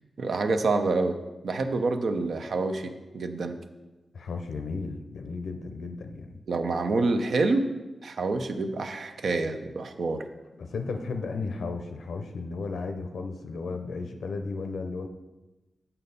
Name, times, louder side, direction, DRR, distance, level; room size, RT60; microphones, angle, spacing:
voice 1, 0.2-1.2 1.4-3.6 6.5-7.7 8.0-10.2, right 3 dB, 70° right, 7 dB, 0.6 m, -27 dB
voice 2, 4.1-6.4 10.6-15.1, left 4 dB, 85° left, 6 dB, 0.6 m, -34 dB
6.9 x 5.6 x 4.1 m, 1.1 s
cardioid pair, 70°, 0 cm